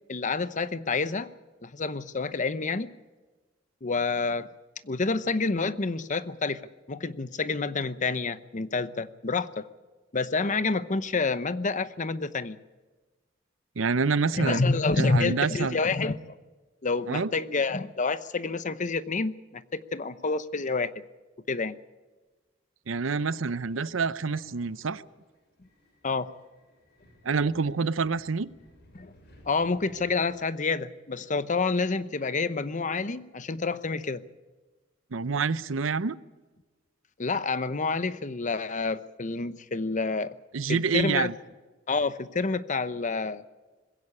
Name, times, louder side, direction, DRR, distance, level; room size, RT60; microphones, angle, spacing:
voice 1, 0.1-1.3 1.6-2.9 3.8-4.5 4.8-6.6 6.9-9.7 10.1-12.6 14.3-16.3 16.8-20.9 21.5-21.8 26.0-26.3 28.9-29.1 29.5-34.2 37.2-40.3 40.7-41.3 41.9-43.4, left 4 dB, 40° left, 14 dB, 0.8 m, -28 dB
voice 2, 13.8-14.6 15.0-15.8 17.1-17.3 22.9-25.0 27.2-28.5 35.1-36.2 40.5-41.3, right 5 dB, 85° right, 16 dB, 0.7 m, -27 dB
Subway metro underground, 23.1-30.6, left 1 dB, 60° left, 6.7 m, -58 dB
21.0 x 16.5 x 8.7 m, 1.2 s
head